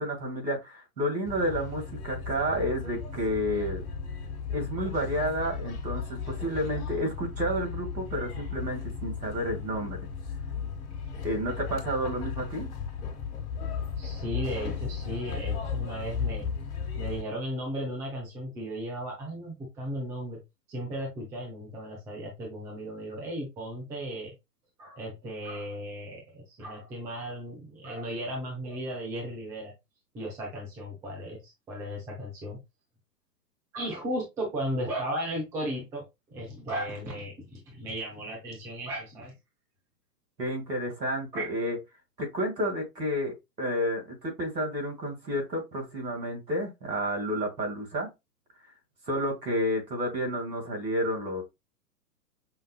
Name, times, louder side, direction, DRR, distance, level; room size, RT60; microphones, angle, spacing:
voice 1, 0.0-3.8 4.5-10.0 11.2-12.7 40.4-41.8 42.2-48.1 49.1-51.4, equal, 80° right, 2.1 m, -30 dB
sound 1, 1.2-17.2, left 6 dB, 45° left, 1.6 m, -35 dB
voice 2, 14.0-16.5 17.0-20.4 20.7-24.3 24.8-29.7 30.1-32.6 33.7-39.3 41.3-41.5, equal, 5° right, 0.5 m, -35 dB
5.6 x 2.6 x 2.2 m
figure-of-eight pair, 115°, 49 cm